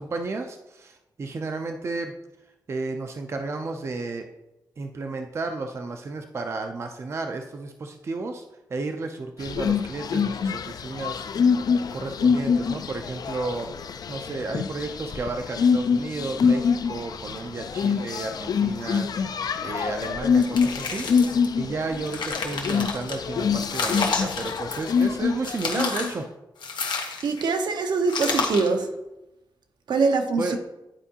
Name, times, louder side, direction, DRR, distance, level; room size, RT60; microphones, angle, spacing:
voice 1, 0.0-2.1 2.7-4.2 4.8-8.4 8.7-11.3 11.9-26.3 30.4-30.6, right 3 dB, 35° right, 0.4 m, -33 dB
sound 1, 9.4-26.1, left 6 dB, 60° left, 0.3 m, -25 dB
sound 2, 20.4-21.5 21.9-23.2 23.6-25.1 25.4-26.2 26.6-27.5 28.1-28.8, left 4 dB, 90° left, 1.0 m, -30 dB
voice 2, 27.2-28.9 29.9-30.6, right 4 dB, 75° right, 0.7 m, -23 dB
10.0 x 4.5 x 2.8 m
wide cardioid pair, 170°, 8 cm